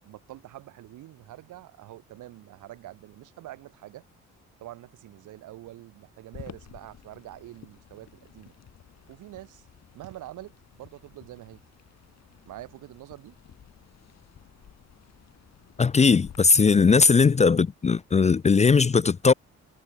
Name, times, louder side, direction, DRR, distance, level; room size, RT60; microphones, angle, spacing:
voice 1, 0.0-4.0 4.6-8.5 9.1-9.7 9.9-11.6 12.5-13.4, right 15 dB, 85° right, 7.1 m, -45 dB
sound 1, 6.3-16.4, left 9 dB, 60° left, 5.9 m, -52 dB
voice 2, 15.8-19.3, left 5 dB, 25° left, 0.5 m, -19 dB
cardioid pair, 90°, 30 cm